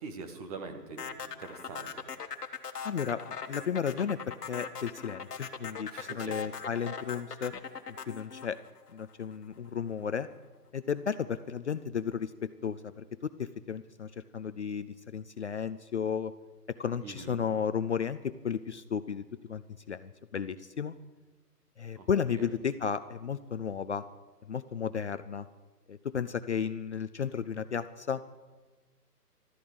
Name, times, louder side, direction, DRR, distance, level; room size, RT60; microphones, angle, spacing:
voice 1, 0.0-2.0 5.9-6.4 17.0-17.4 22.0-22.1 22.4-22.5, right 4 dB, 25° right, 5 dB, 1.4 m, -43 dB
sound 1, 1.0-9.3, left 6 dB, 70° left, 1.5 m, -40 dB
voice 2, 2.8-7.5 8.1-8.6 8.9-10.3 10.7-12.3 12.6-13.0 13.4-16.3 16.7-19.2 19.5-20.9 21.8-24.0 24.5-25.5 25.9-28.2, left 7 dB, 45° left, 12 dB, 0.5 m, -33 dB
13.5 x 13.0 x 7.8 m, 1.3 s
hypercardioid pair, 150°, 48 cm